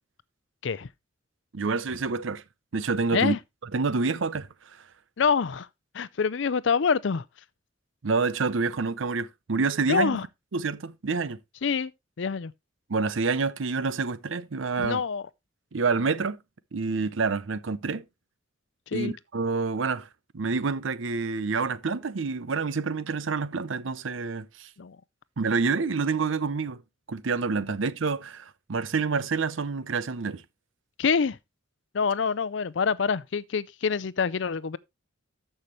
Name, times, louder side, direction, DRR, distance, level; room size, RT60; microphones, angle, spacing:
voice 1, 1.5-2.4 2.7-3.3 3.7-4.8 8.0-10.2 10.5-11.4 12.9-15.0 15.7-16.4 16.7-18.0 18.9-20.1 20.3-24.7 25.4-26.8 27.1-30.4, right 4 dB, 75° right, 0.6 m, -28 dB
voice 2, 5.2-5.7 5.9-7.3 9.9-10.3 11.6-11.9 12.2-12.5 14.8-15.3 18.9-19.2 24.8-25.0 31.0-31.4 31.9-34.8, left 6 dB, 65° left, 0.5 m, -26 dB
13.5 x 5.7 x 3.1 m
head